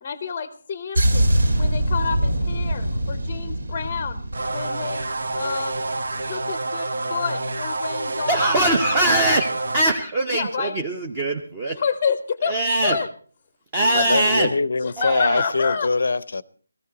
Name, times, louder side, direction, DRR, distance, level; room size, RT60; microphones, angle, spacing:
voice 1, 0.0-1.3 1.6-4.2 4.5-5.1 5.3-5.9 6.3-8.4 8.9-9.1 10.3-10.7 11.8-12.6 12.8-13.1 13.8-14.2 14.8-15.9, left 6 dB, 20° left, 0.7 m, -29 dB
sound 1, 0.9-5.5 5.8-6.1, right 1 dB, 90° right, 3.0 m, -23 dB
sound 2, 4.3-9.8, right 2 dB, 65° right, 1.0 m, -28 dB
voice 2, 8.3-11.8 12.4-13.0 13.7-14.5 15.0-15.4, right 2 dB, 15° right, 0.7 m, -22 dB
voice 3, 13.9-16.4, left 3 dB, 60° left, 0.6 m, -23 dB
17.5 x 15.0 x 4.0 m
figure-of-eight pair, 175°, 0 cm